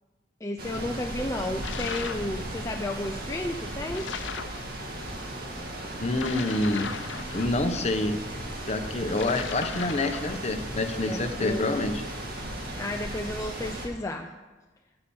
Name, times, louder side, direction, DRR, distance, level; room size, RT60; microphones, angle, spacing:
voice 1, 0.4-4.1 11.1-11.9 12.8-14.3, left 1 dB, 15° left, 2 dB, 0.5 m, -32 dB
sound 1, 0.6-13.9, right 1 dB, 55° right, 2.1 m, -36 dB
sound 2, 1.6-2.3 3.9-4.6 6.1-7.8 9.1-10.5, left 6 dB, 85° left, 0.7 m, -37 dB
voice 2, 6.0-6.9 7.3-8.2 8.7-12.0, left 2 dB, 35° left, 7 dB, 0.9 m, -27 dB
14.0 x 5.8 x 7.1 m, 1.2 s
head